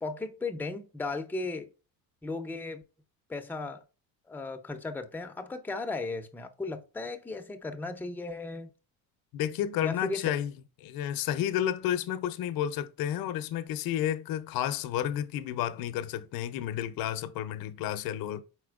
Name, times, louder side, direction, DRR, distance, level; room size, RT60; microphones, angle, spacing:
voice 1, 0.0-1.7 2.2-2.8 3.3-3.8 4.3-8.7 9.8-10.3, left 3 dB, 5° left, 0.5 m, -36 dB
voice 2, 9.3-10.5 10.8-18.4, left 11 dB, 60° left, 0.6 m, -31 dB
4.3 x 4.3 x 2.3 m
cardioid pair, 100°, 39 cm